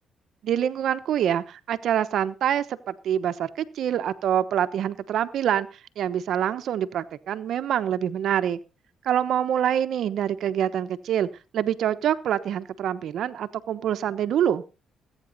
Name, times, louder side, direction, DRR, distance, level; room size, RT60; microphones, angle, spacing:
voice 1, 0.4-5.7 6.0-8.6 9.0-11.3 11.5-14.6, right 10 dB, 70° right, 11 dB, 1.0 m, -25 dB
20.0 x 9.1 x 4.1 m, 0.32 s
cardioid pair, 90°, 0 cm